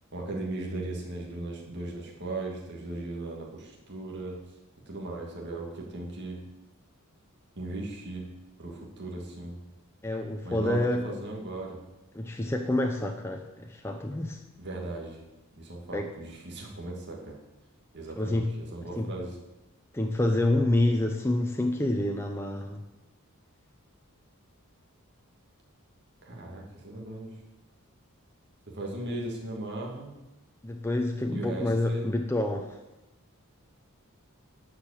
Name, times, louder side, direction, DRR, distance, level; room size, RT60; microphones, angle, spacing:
voice 1, 0.1-4.4 4.9-6.4 7.6-8.3 8.6-9.6 10.4-11.8 14.6-15.2 15.6-17.4 17.9-19.4 26.2-27.4 28.7-30.1 31.3-32.1, right 2 dB, 50° right, -1 dB, 2.1 m, -37 dB
voice 2, 10.0-11.1 12.1-14.4 15.9-16.1 18.2-18.5 19.0-19.1 19.9-22.8 30.6-32.8, left 1 dB, 10° left, 2 dB, 0.6 m, -28 dB
12.0 x 5.1 x 8.4 m, 0.97 s
head